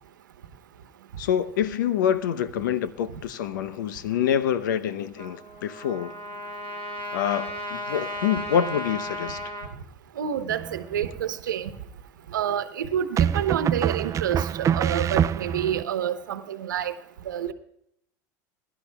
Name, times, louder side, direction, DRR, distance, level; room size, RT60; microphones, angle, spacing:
voice 1, 1.2-6.1 7.1-9.4, left 9 dB, 80° left, 0.8 m, -26 dB
Trumpet, 5.2-9.7, equal, 25° left, 3.5 m, -35 dB
voice 2, 10.2-11.7 12.3-16.9 17.3-17.5, right 9 dB, 85° right, 1.1 m, -28 dB
sound 1, 10.5-11.1 13.2-15.8, right 9 dB, 30° right, 0.3 m, -25 dB
21.5 x 11.5 x 2.3 m
hypercardioid pair, 85°, 10 cm